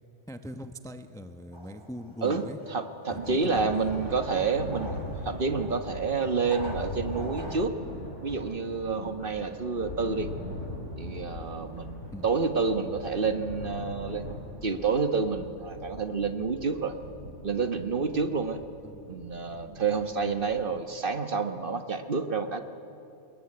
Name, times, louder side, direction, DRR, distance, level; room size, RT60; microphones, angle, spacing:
voice 1, 0.3-2.6 3.1-3.9 12.1-12.3 18.8-19.0, equal, 5° left, 8 dB, 0.8 m, -41 dB
sound 1, 1.5-7.7, right 1 dB, 25° right, 1.8 m, -45 dB
voice 2, 2.7-4.9 5.2-7.7 8.2-10.3 11.0-16.9 17.4-18.6 19.1-22.6, right 4 dB, 50° right, 8 dB, 1.5 m, -29 dB
Thunder, 3.1-20.8, left 1 dB, 80° left, 5.4 m, -41 dB
26.5 x 21.5 x 9.8 m, 2.7 s
omnidirectional pair, 1.2 m